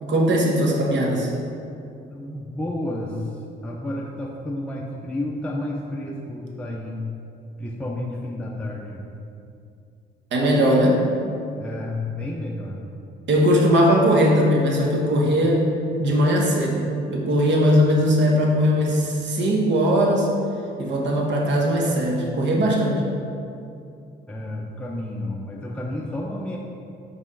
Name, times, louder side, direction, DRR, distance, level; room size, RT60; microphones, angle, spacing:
voice 1, 0.0-1.3 10.3-11.0 13.3-15.7 16.0-16.8 17.1-20.3 20.8-23.0, equal, 65° right, -1 dB, 1.1 m, -19 dB
voice 2, 2.1-7.0 7.6-9.0 11.6-12.9 24.3-26.6, left 1 dB, 5° left, -2 dB, 0.5 m, -31 dB
5.1 x 3.4 x 5.3 m, 2.5 s
cardioid pair, 90°, 20 cm